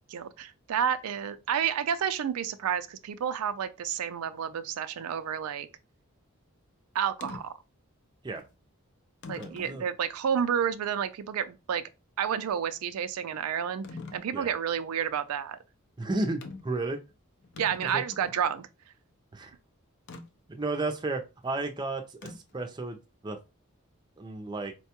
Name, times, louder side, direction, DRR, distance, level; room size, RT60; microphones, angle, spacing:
voice 1, 0.1-5.7 6.9-7.5 9.3-11.8 12.2-13.8 14.1-15.6 17.6-18.7, right 8 dB, 85° right, 0.4 m, -30 dB
sound 1, 7.2-7.4 8.4-8.5 9.2-9.8 10.4-10.5 13.8-14.3 16.4-16.8 17.1-17.2 17.4-18.5 20.1-20.2 22.2-22.6, left 3 dB, 55° left, 0.5 m, -43 dB
voice 2, 9.4-9.9 14.3-14.5 16.0-17.0 17.9-18.0 19.3-19.6 20.5-23.0 23.2-23.4 24.2-24.7, right 2 dB, 20° right, 0.5 m, -33 dB
4.5 x 2.2 x 2.8 m
head